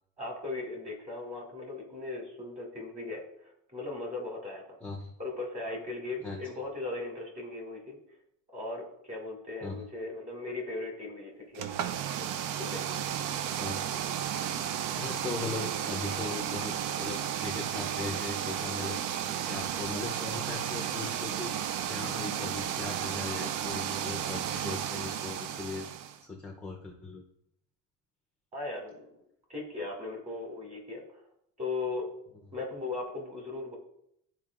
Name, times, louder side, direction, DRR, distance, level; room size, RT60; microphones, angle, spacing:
voice 1, 0.2-4.8 5.2-8.0 8.5-11.7 12.2-12.3 12.6-12.8 15.5-15.7 28.5-29.2 29.5-31.2 31.6-32.1 32.5-33.8, left 3 dB, 20° right, -1 dB, 2.1 m, -38 dB
voice 2, 4.8-5.1 6.2-6.4 9.6-9.9 13.6-14.0 14.9-27.2, left 3 dB, 5° left, -1 dB, 0.6 m, -39 dB
sound 1, 11.5-26.2, right 9 dB, 60° right, 0.6 m, -33 dB
12.0 x 4.3 x 2.4 m, 0.74 s
cardioid pair, 165°, 35 cm